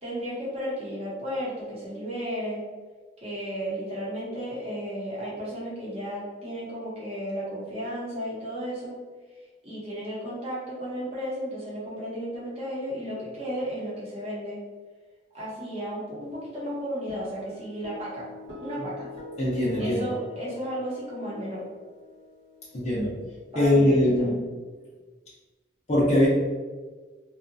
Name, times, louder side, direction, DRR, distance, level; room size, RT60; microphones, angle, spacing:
voice 1, 0.0-2.6 3.2-9.0 9.6-14.6 15.3-18.2 18.6-19.0 19.8-21.6 23.5-24.3, equal, 35° right, -7 dB, 0.9 m, -34 dB
Guitar, 17.1-23.7, left 2 dB, 85° right, 1.3 m, -44 dB
voice 2, 19.4-20.1 22.7-23.1 23.6-24.4 25.9-26.3, left 1 dB, 35° left, -7 dB, 0.6 m, -22 dB
2.8 x 2.3 x 2.6 m, 1.4 s
head